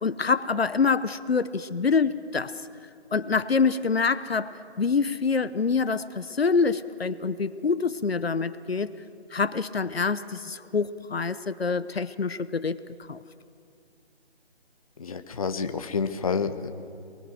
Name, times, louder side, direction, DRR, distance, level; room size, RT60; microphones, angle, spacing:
voice 1, 0.0-2.6 3.1-8.9 9.3-12.8 13.1-13.2, left 5 dB, 65° left, 14 dB, 1.0 m, -26 dB
voice 2, 15.0-16.7, left 5 dB, 35° left, 8 dB, 1.1 m, -29 dB
29.0 x 22.0 x 7.7 m, 2.4 s
figure-of-eight pair, 160°, 32 cm